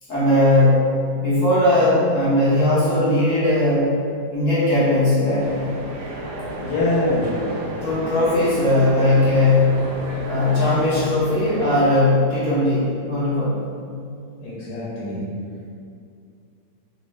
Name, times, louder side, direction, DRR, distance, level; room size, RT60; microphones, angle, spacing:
voice 1, 0.1-4.0 4.3-5.6 7.8-9.9 10.2-13.6, left 1 dB, 50° left, -10 dB, 1.2 m, -18 dB
sound 1, 5.4-11.9, right 1 dB, 70° right, 0.9 m, -32 dB
voice 2, 6.6-7.5 14.4-15.2, left 2 dB, 85° left, -7 dB, 1.3 m, -24 dB
3.5 x 2.5 x 3.1 m, 2.4 s
omnidirectional pair, 1.9 m